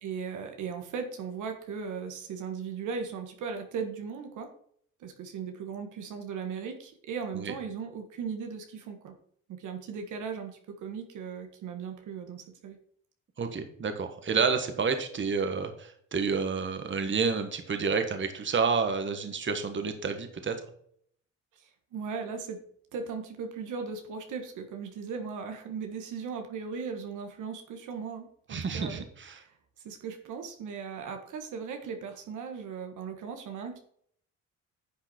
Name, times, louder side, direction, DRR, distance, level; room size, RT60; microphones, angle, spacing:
voice 1, 0.0-4.5 5.0-9.2 9.5-12.8 21.6-22.6 22.9-29.0 29.4-29.5 29.8-33.8, right 6 dB, 80° right, 5 dB, 1.6 m, -37 dB
voice 2, 13.4-20.5 28.5-29.4, right 5 dB, 40° right, 7 dB, 1.5 m, -29 dB
10.5 x 5.9 x 4.4 m, 0.62 s
cardioid pair, 90°, 30 cm